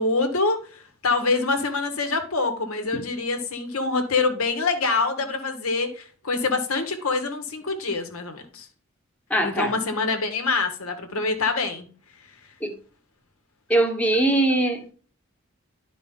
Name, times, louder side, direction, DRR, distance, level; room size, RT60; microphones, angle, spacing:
voice 1, 0.0-8.7 9.4-11.9, left 3 dB, 75° left, 1.4 m, -25 dB
voice 2, 9.3-9.7 12.6-12.7 13.7-14.9, right 1 dB, 5° left, 1.1 m, -22 dB
11.0 x 4.8 x 3.7 m
head